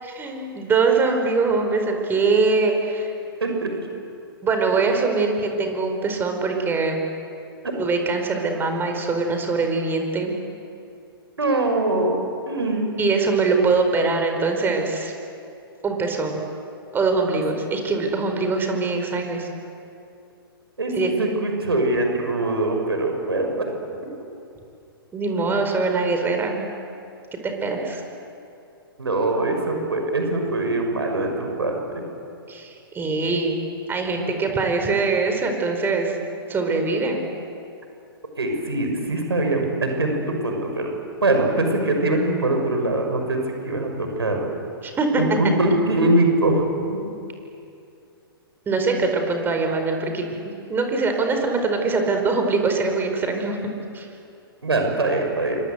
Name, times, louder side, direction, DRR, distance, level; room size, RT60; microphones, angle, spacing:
voice 1, 0.0-3.1 4.4-7.0 7.8-10.3 13.0-15.1 15.8-16.4 16.9-19.5 20.9-21.1 25.1-26.7 27.4-28.0 32.5-33.6 33.9-36.1 36.5-37.2 44.8-45.2 48.7-50.2 50.7-53.6 53.9-54.1, right 4 dB, 15° right, 4 dB, 4.8 m, -23 dB
voice 2, 11.4-12.2 12.5-13.0 20.8-23.7 29.0-32.0 38.4-40.9 41.2-44.5 45.2-47.0 54.6-55.6, right 2 dB, 85° right, 3 dB, 6.0 m, -22 dB
28.0 x 25.0 x 8.2 m, 2.6 s
figure-of-eight pair, 120°, 13 cm